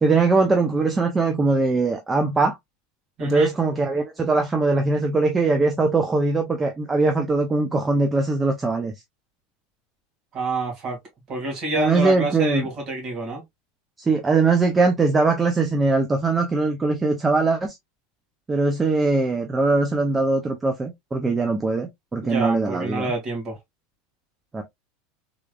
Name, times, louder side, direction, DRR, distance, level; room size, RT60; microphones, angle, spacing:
voice 1, 0.0-2.6 3.2-8.9 11.8-12.7 14.0-17.8 18.5-23.1 24.5-24.6, right 3 dB, 10° right, 0.5 m, -21 dB
voice 2, 3.2-3.5 10.3-11.0 11.3-13.4 22.2-23.6, right 2 dB, 30° right, 2.1 m, -27 dB
3.6 x 3.3 x 2.2 m
supercardioid pair, 170°, 0 cm